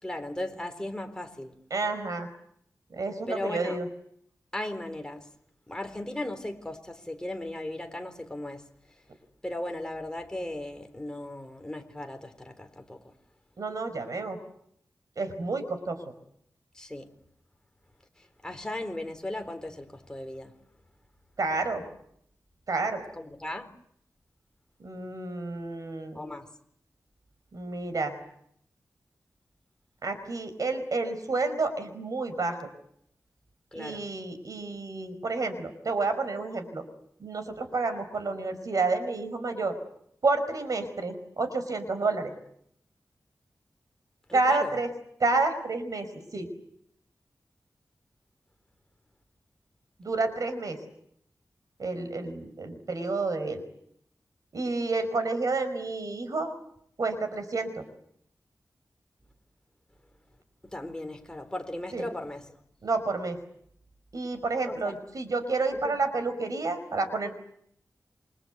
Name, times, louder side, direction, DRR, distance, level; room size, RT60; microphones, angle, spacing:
voice 1, 0.0-1.5 3.3-3.8 4.5-5.3 5.7-8.6 9.4-13.0 16.7-17.1 18.2-20.5 23.2-23.7 26.1-26.5 33.7-34.1 44.3-44.8 60.7-62.6 64.7-64.9 65.8-66.0, left 1 dB, 10° left, 4.0 m, -37 dB
voice 2, 1.7-2.3 2.9-3.9 13.6-14.4 15.1-16.0 21.4-21.8 22.7-23.0 24.8-26.2 27.5-28.2 30.0-32.7 33.7-36.8 37.2-39.8 40.2-42.3 44.3-44.9 45.2-46.5 50.0-50.8 51.8-53.6 54.5-56.5 57.0-57.8 61.9-62.1 62.8-63.4 64.1-67.4, right 3 dB, 65° right, 5.2 m, -30 dB
28.5 x 25.0 x 8.2 m
wide cardioid pair, 110°, 6 cm